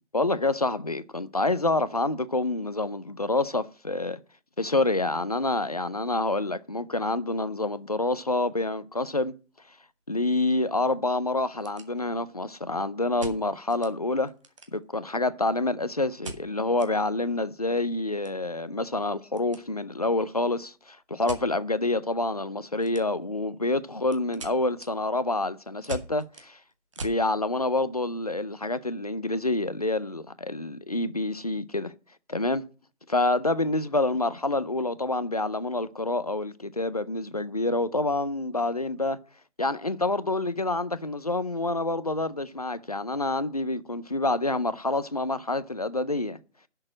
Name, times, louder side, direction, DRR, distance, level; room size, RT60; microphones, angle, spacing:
voice 1, 0.1-4.2 4.6-9.3 10.1-14.3 14.7-26.6 27.0-31.9 32.3-32.6 33.1-39.2 39.6-46.4, left 2 dB, 35° left, 0.5 m, -27 dB
sound 1, 9.3-9.4 9.7-9.8 10.4-10.5 10.7-10.8 11.4-12.4 13.2-13.9 14.3-15.1 16.2-16.9 17.3-17.4 17.7-19.7 19.9-20.2 21.2-21.5 22.8-23.3 23.7-27.2, right 2 dB, 25° right, 1.2 m, -42 dB
10.5 x 6.7 x 6.2 m
figure-of-eight pair, 165°, 36 cm